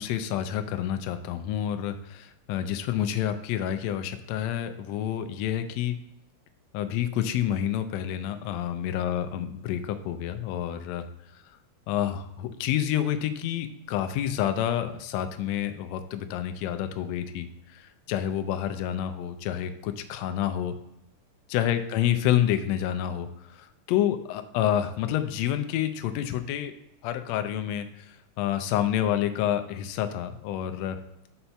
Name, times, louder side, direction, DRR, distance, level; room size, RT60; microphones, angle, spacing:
voice 1, 0.0-6.0 6.7-11.0 11.9-20.7 21.5-26.7 27.0-31.0, left 11 dB, 85° left, 8 dB, 1.5 m, -28 dB
5.6 x 4.2 x 4.4 m, 0.86 s
omnidirectional pair, 3.6 m